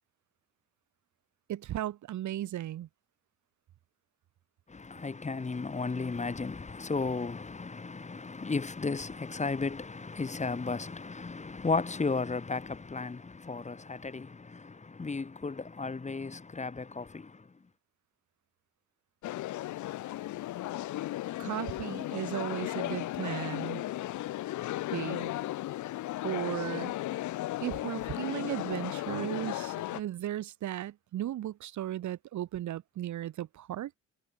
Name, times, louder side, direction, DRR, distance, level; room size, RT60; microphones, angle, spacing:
voice 1, 1.5-2.9 21.4-23.8 24.9-25.3 26.2-26.9 27.6-34.0, right 12 dB, 70° right, 1.8 m, -36 dB
voice 2, 4.7-17.5, left 4 dB, 25° left, 1.7 m, -34 dB
sound 1, 19.2-30.0, left 15 dB, 75° left, 0.8 m, -35 dB
cardioid pair, 90°, 30 cm